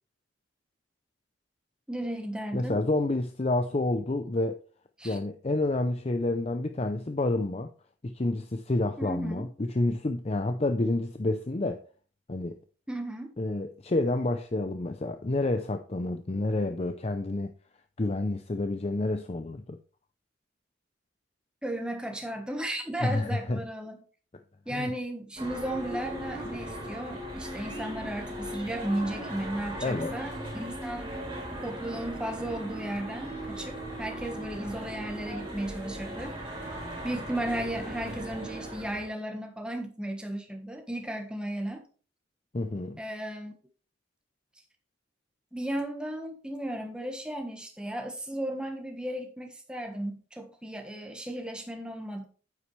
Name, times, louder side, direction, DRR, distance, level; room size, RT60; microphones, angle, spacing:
voice 1, 1.9-2.8 5.0-5.2 9.0-9.5 12.9-13.3 21.6-24.0 24.7-31.2 31.6-36.4 37.0-41.8 43.0-43.5 45.5-52.2, right 1 dB, 5° right, 1.4 m, -35 dB
voice 2, 2.5-4.6 5.0-7.7 8.0-11.8 12.3-12.6 13.4-17.5 18.0-19.8 23.0-23.6 24.7-24.9 29.8-30.2 42.5-43.0, left 2 dB, 35° left, 0.5 m, -29 dB
sound 1, 25.4-39.1, right 1 dB, 30° right, 4.1 m, -38 dB
9.5 x 8.3 x 3.3 m
head